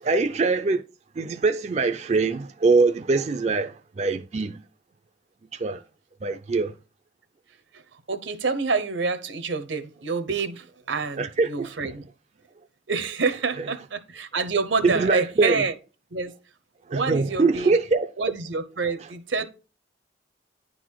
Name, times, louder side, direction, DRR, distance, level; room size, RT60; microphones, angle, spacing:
voice 1, 0.0-0.8 1.2-4.6 5.5-5.8 6.2-6.7 11.2-11.9 14.8-15.6 16.9-18.3, right 3 dB, 35° right, 0.3 m, -23 dB
voice 2, 8.1-12.0 12.9-15.7 16.1-16.3 16.9-17.7 18.2-19.5, right 4 dB, 85° right, 0.9 m, -27 dB
9.9 x 4.1 x 4.6 m
head